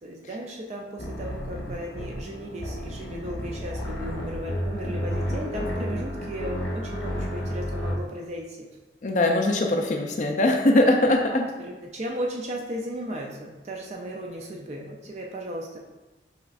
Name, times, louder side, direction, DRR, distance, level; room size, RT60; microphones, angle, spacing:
voice 1, 0.0-8.7 11.3-15.8, equal, 35° right, 0 dB, 0.4 m, -35 dB
sound 1, 1.0-8.0, equal, 75° left, 0.8 m, -31 dB
voice 2, 9.0-11.5, left 1 dB, 40° left, 2 dB, 0.4 m, -21 dB
5.8 x 3.0 x 2.4 m, 1.1 s
head